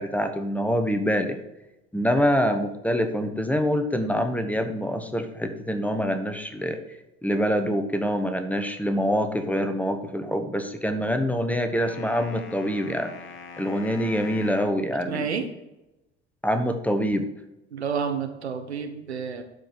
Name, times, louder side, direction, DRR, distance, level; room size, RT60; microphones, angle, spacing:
voice 1, 0.0-1.4 1.9-13.1 13.6-15.3 16.4-17.2, equal, 5° left, 7 dB, 1.2 m, -25 dB
sound 1, 11.8-14.8, left 5 dB, 40° left, 1.4 m, -42 dB
voice 2, 15.1-15.4 17.7-19.4, right 6 dB, 85° right, 6 dB, 1.1 m, -29 dB
12.0 x 5.1 x 4.8 m, 0.94 s
figure-of-eight pair, 65°, 32 cm